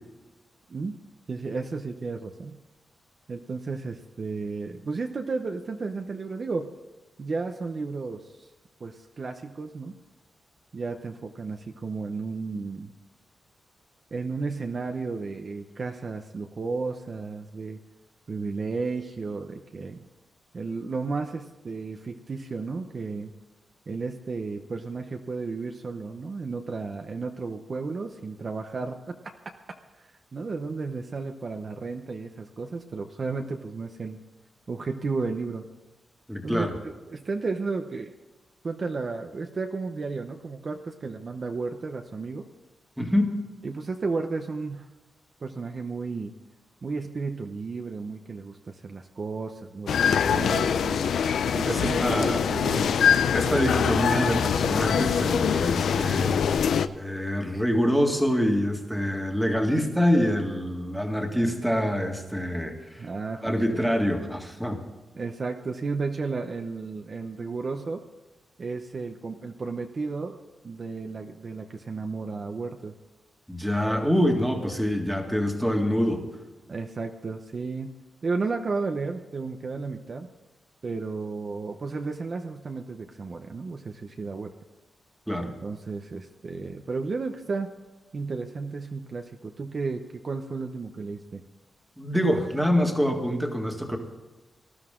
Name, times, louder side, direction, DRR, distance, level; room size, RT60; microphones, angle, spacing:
voice 1, 1.3-2.6 3.3-6.7 7.2-8.5 8.8-9.9 10.7-12.9 14.1-17.8 18.3-20.0 20.5-23.3 23.9-29.5 30.0-34.2 34.7-35.6 36.4-38.1 38.6-42.4 43.6-44.9 45.4-46.3 46.8-50.0 50.3-51.1 51.5-53.2 63.0-63.9 65.1-68.0 68.6-72.9 76.7-77.9 78.2-80.3 80.8-84.5 85.4-87.7 88.1-91.4, right 4 dB, 40° right, 4 dB, 0.8 m, -33 dB
voice 2, 36.3-36.8 43.0-43.3 51.7-52.4 53.3-56.4 57.0-63.1 63.4-64.8 73.5-76.2 85.3-85.5 92.0-94.0, equal, ahead, 3 dB, 1.9 m, -25 dB
sound 1, 49.9-56.9, left 7 dB, 80° left, 0.6 m, -23 dB
19.0 x 13.0 x 3.8 m, 1.1 s
wide cardioid pair, 160°, 0 cm